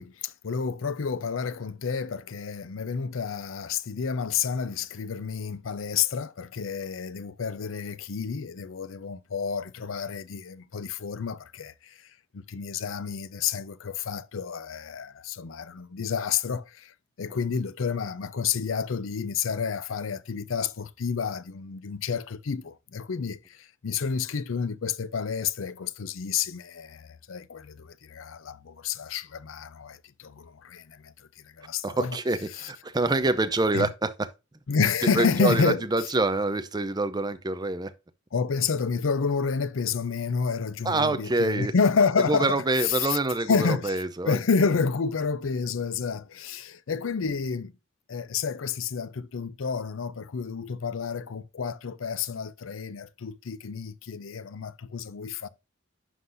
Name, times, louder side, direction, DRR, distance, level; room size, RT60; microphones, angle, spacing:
voice 1, 0.0-11.7 12.3-16.9 17.2-23.4 23.8-31.1 31.6-32.2 33.7-33.9 34.7-35.8 38.3-43.2 43.5-43.9 44.3-47.7 48.1-55.5, left 5 dB, 80° left, 0.6 m, -29 dB
voice 2, 31.8-34.3 35.0-37.9 40.8-41.7 42.2-44.4, right 2 dB, 20° right, 0.6 m, -26 dB
11.0 x 3.9 x 2.6 m
head